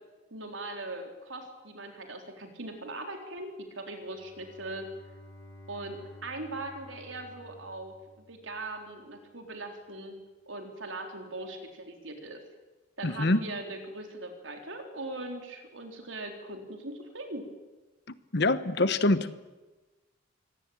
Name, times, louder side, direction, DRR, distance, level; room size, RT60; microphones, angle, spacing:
voice 1, 0.3-4.9 5.7-10.2 10.5-12.4 13.0-17.5, right 2 dB, 75° right, 4 dB, 4.1 m, -40 dB
Bowed string instrument, 3.9-8.9, equal, 15° left, 5.6 m, -52 dB
voice 2, 13.0-13.5 18.3-19.4, left 2 dB, 60° left, 14 dB, 1.2 m, -25 dB
24.5 x 17.5 x 9.0 m, 1.2 s
head